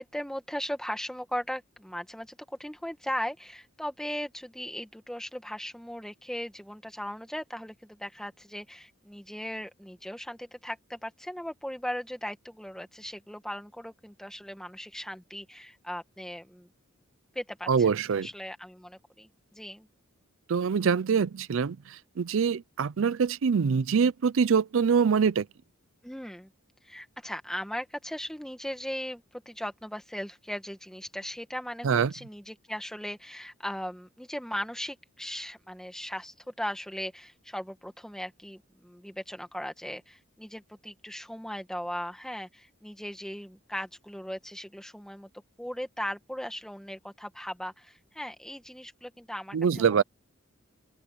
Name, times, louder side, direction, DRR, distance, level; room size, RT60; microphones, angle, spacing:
voice 1, 0.0-16.7 17.4-19.9 26.0-26.5 26.8-45.3 45.6-50.0, equal, 5° left, 1.8 m, -38 dB
voice 2, 17.7-18.3 20.5-25.5 31.8-32.1 49.5-50.0, right 6 dB, 70° right, 0.4 m, -24 dB
head